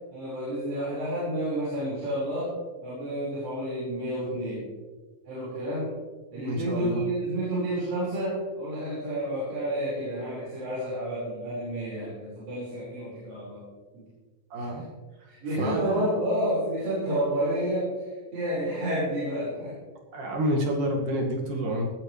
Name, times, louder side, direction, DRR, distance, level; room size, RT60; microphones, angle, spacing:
voice 1, 0.1-2.5 2.8-4.6 5.3-5.9 6.3-13.6 13.9-14.0 14.6-14.7 15.3-19.7, right 1 dB, 85° right, -9 dB, 7.0 m, -30 dB
voice 2, 6.4-7.0 14.5-14.8 15.6-16.1 20.1-21.9, equal, 70° right, 0 dB, 3.7 m, -28 dB
19.0 x 14.5 x 3.3 m, 1.4 s
omnidirectional pair, 3.9 m